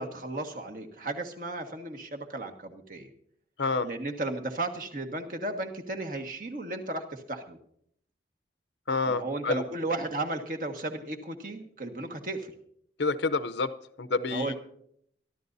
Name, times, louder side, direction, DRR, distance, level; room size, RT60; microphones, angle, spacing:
voice 1, 0.0-3.1 3.8-7.6 9.1-12.5 14.3-14.6, right 2 dB, 50° right, 3 dB, 1.6 m, -34 dB
voice 2, 8.9-9.6 13.0-13.7 14.0-14.6, left 3 dB, 80° left, 13 dB, 0.7 m, -28 dB
24.0 x 12.0 x 2.7 m, 0.67 s
head